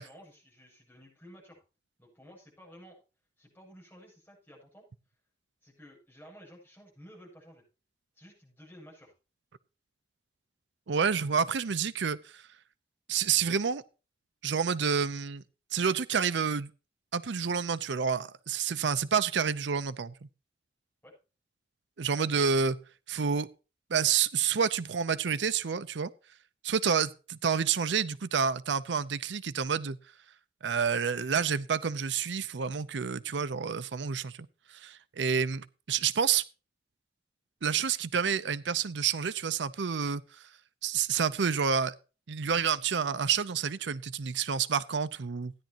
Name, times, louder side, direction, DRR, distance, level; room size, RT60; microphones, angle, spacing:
voice 1, 0.0-1.6 2.0-3.0 3.4-4.8 5.6-7.6 8.1-9.1 21.0-21.2, equal, 10° left, 7.5 m, -53 dB
voice 2, 10.9-12.4 13.1-13.8 14.4-15.4 15.7-16.7 17.1-20.1 22.0-22.8 23.1-23.5 23.9-26.1 26.6-30.0 30.6-36.4 37.6-40.5 40.8-41.9 42.3-45.5, right 6 dB, 85° right, 0.6 m, -29 dB
16.0 x 10.5 x 2.9 m
head